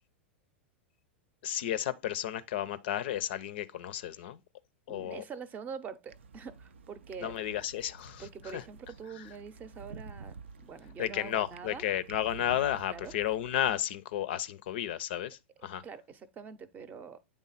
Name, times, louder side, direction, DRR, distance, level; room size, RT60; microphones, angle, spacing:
voice 1, 1.4-4.4 4.9-5.2 7.2-8.2 8.5-8.6 11.0-15.8, left 11 dB, 60° left, 0.5 m, -33 dB
voice 2, 4.9-7.4 8.2-11.8 12.9-13.1 15.8-17.2, right 6 dB, 25° right, 0.6 m, -44 dB
sound 1, 6.1-13.7, right 5 dB, 75° right, 0.4 m, -50 dB
8.4 x 3.5 x 4.0 m
hypercardioid pair, 100°, 6 cm